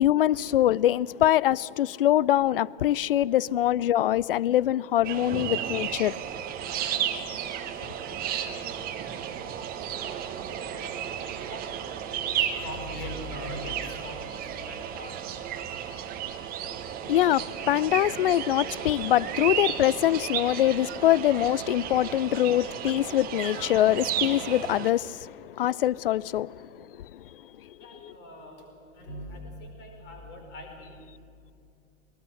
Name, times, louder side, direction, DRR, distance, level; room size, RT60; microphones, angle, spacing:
voice 1, 0.0-6.2 17.1-27.2, left 12 dB, 45° left, 0.4 m, -24 dB
sound 1, 5.0-24.9, right 9 dB, 20° right, 1.3 m, -33 dB
voice 2, 7.1-8.7 9.8-12.1 12.6-15.1 27.8-28.6 29.0-31.2, left 1 dB, 25° left, 5.0 m, -42 dB
22.5 x 19.5 x 8.0 m
figure-of-eight pair, 105°, 40 cm